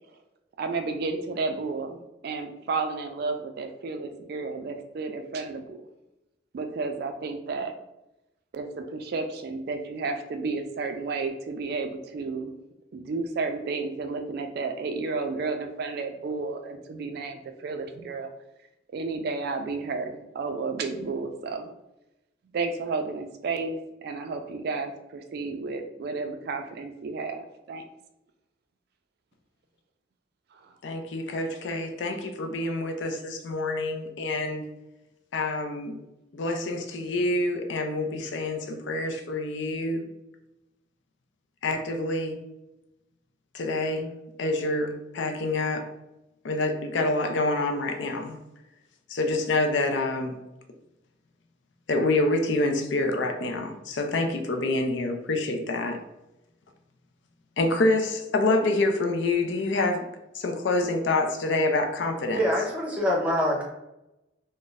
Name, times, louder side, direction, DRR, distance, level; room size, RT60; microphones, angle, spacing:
voice 1, 0.6-5.8 6.5-7.7 8.5-12.6 12.9-18.3 18.9-21.7 22.5-27.8 30.5-30.7, right 4 dB, 55° right, 7 dB, 0.3 m, -32 dB
voice 2, 30.8-34.6 35.3-36.0 36.3-40.1 41.6-42.4 43.5-44.1 44.4-45.9 46.4-48.4 49.1-50.3 51.9-56.0 57.6-60.1 60.3-62.4, left 2 dB, 70° left, 5 dB, 0.4 m, -27 dB
voice 3, 62.3-63.6, left 1 dB, 5° right, -3 dB, 0.7 m, -25 dB
2.4 x 2.0 x 3.8 m, 0.93 s
head